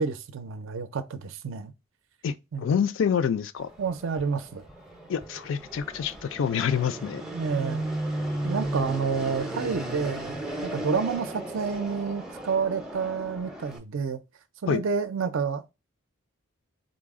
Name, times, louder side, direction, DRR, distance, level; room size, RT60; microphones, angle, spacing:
voice 1, 0.0-1.7 2.5-2.7 3.8-4.6 7.3-7.9 8.4-10.4 10.6-14.2 14.6-15.7, right 5 dB, 65° right, 0.4 m, -29 dB
voice 2, 2.2-3.7 5.1-7.2 14.7-14.8, left 7 dB, 60° left, 0.3 m, -27 dB
Fixed-wing aircraft airplane, 3.6-13.8, right 1 dB, ahead, 0.5 m, -35 dB
3.9 x 2.0 x 3.5 m
head